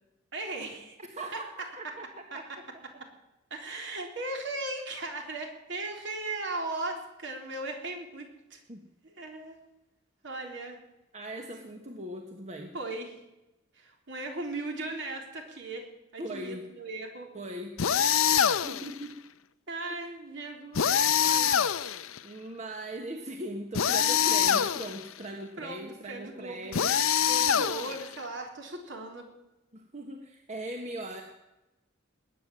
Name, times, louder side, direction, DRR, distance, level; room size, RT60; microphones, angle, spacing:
voice 1, 0.3-1.0 1.3-1.4 1.8-1.9 2.3-2.4 3.5-8.6 9.0-9.6 10.2-10.8 12.7-13.2 13.7-15.9 16.1-17.3 19.7-21.6 24.2-24.4 25.6-26.8 27.2-29.2, right 2 dB, 60° right, 2 dB, 3.7 m, -38 dB
voice 2, 1.1-2.1 2.3-2.5 8.7-8.8 11.1-12.7 16.2-16.6 17.3-17.8 18.6-19.2 22.2-27.0 29.7-31.2, right 1 dB, 35° right, 4 dB, 1.3 m, -39 dB
sound 1, 17.8-18.9 20.7-22.2 23.7-25.0 26.7-28.1, left 8 dB, 85° left, 0.7 m, -25 dB
20.5 x 9.3 x 7.5 m, 0.99 s
head